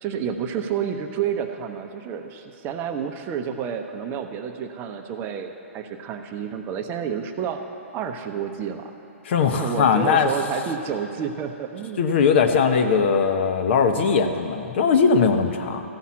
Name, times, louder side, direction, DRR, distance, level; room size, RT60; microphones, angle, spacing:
voice 1, 0.0-7.6 7.9-8.9 9.6-12.0, right 7 dB, 30° right, 6 dB, 0.7 m, -30 dB
voice 2, 9.2-10.3 12.0-15.8, left 6 dB, 50° left, 6 dB, 0.8 m, -20 dB
14.0 x 5.6 x 7.3 m, 2.9 s
figure-of-eight pair, 120°, 8 cm